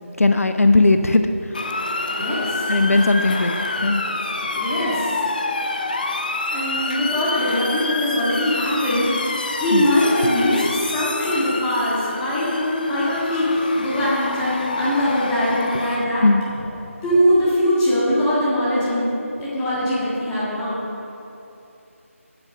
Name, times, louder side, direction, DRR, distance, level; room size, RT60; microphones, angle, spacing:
voice 1, 0.2-1.6 2.7-4.0 9.7-9.9 16.2-16.4, left 2 dB, 80° left, 8 dB, 0.8 m, -18 dB
Motor vehicle (road) / Siren, 1.5-16.0, left 2 dB, 35° left, 0.7 m, -27 dB
voice 2, 2.2-2.7 4.6-5.2 6.5-9.3 9.6-16.2 17.0-19.1 19.4-20.8, left 1 dB, 5° left, -10 dB, 1.8 m, -21 dB
9.7 x 8.8 x 6.2 m, 2.9 s
figure-of-eight pair, 170°, 8 cm